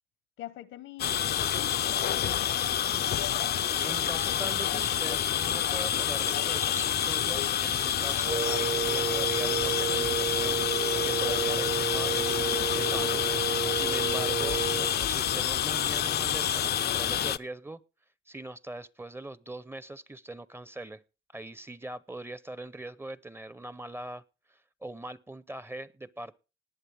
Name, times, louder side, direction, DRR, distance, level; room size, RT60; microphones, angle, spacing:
voice 1, 0.4-3.4 3.8-5.1, left 13 dB, 85° left, 1.1 m, -47 dB
sound 1, 1.0-17.4, left 9 dB, 55° left, 0.5 m, -28 dB
voice 2, 3.8-10.6 11.0-13.3 13.7-17.8 18.3-21.0 21.3-24.2 24.5-26.4, right 1 dB, 10° right, 0.7 m, -41 dB
Wind instrument woodwind instrument, 8.2-15.0, right 7 dB, 45° right, 1.0 m, -31 dB
20.0 x 7.5 x 3.4 m
cardioid pair, 90°, 20 cm